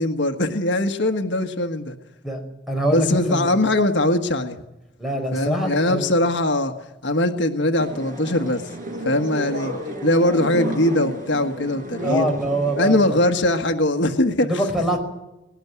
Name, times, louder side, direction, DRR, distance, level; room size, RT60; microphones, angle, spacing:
voice 1, 0.0-1.9 2.9-4.6 5.3-6.7 7.0-8.7 9.0-9.7 10.0-12.3 12.8-14.6, left 1 dB, 65° left, 5 dB, 1.5 m, -21 dB
voice 2, 2.7-3.5 5.0-6.0 12.0-13.2 14.5-15.0, right 1 dB, ahead, 3 dB, 5.1 m, -24 dB
sound 1, 7.8-12.9, right 1 dB, 45° right, 6.4 m, -31 dB
19.5 x 18.0 x 9.5 m, 0.93 s
head